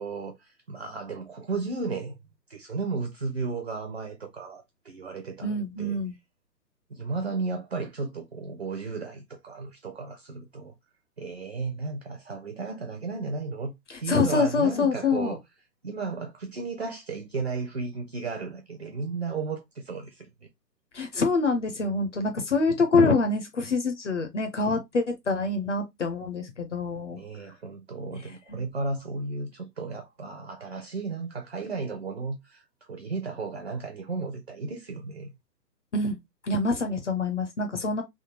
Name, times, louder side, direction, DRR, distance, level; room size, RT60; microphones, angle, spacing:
voice 1, 0.0-2.2 2.5-6.0 6.9-10.7 11.2-13.7 14.0-15.4 15.8-20.3 27.1-32.6 32.9-35.3, right 4 dB, 40° right, 0.5 m, -34 dB
voice 2, 5.4-6.1 14.1-15.4 20.9-27.2 28.5-28.6 35.9-36.2 36.4-38.0, left 3 dB, 45° left, 0.7 m, -25 dB
3.5 x 2.3 x 2.9 m
figure-of-eight pair, 140°, 50 cm